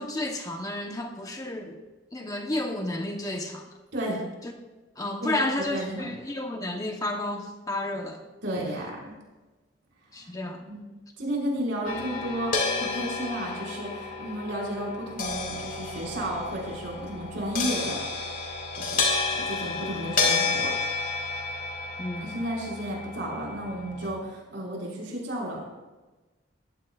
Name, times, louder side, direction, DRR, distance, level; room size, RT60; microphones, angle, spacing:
voice 1, 0.0-1.8 2.1-3.6 5.0-8.2 10.1-10.6 22.0-22.3, left 1 dB, 20° left, 3 dB, 1.0 m, -31 dB
voice 2, 3.9-4.2 5.2-6.1 8.4-9.1 10.2-10.3 10.7-18.3 18.8-19.0 19.3-20.7 22.2-25.6, right 1 dB, 65° right, -3 dB, 5.2 m, -33 dB
sound 1, 11.8-24.1, left 4 dB, 45° left, 2.2 m, -31 dB
19.5 x 16.0 x 2.5 m, 1.2 s
head